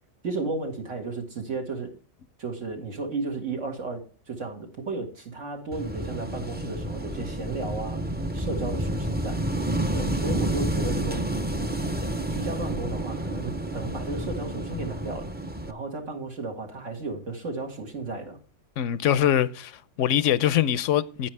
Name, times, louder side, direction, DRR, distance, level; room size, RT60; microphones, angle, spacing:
voice 1, 0.2-1.9 2.4-8.0 8.3-9.4 9.9-11.5 12.3-15.3 15.7-18.4, right 3 dB, 85° right, 2.3 m, -34 dB
Wind / Waves surf, 5.7-15.7, right 1 dB, 15° right, 0.4 m, -30 dB
voice 2, 18.8-21.3, left 10 dB, 85° left, 0.9 m, -23 dB
9.8 x 9.0 x 3.3 m
omnidirectional pair, 1.2 m